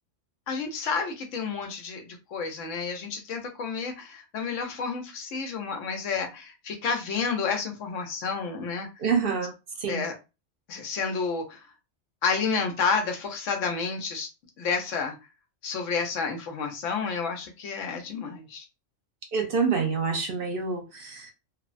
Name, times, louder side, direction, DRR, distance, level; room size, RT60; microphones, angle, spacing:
voice 1, 0.5-8.9 9.9-10.1 10.7-11.7 12.2-14.3 14.6-15.1 15.6-18.7, left 5 dB, 90° left, 1.1 m, -30 dB
voice 2, 9.0-9.5 9.8-10.0 19.3-21.3, right 5 dB, 55° right, 0.7 m, -27 dB
3.1 x 2.0 x 2.4 m
omnidirectional pair, 1.2 m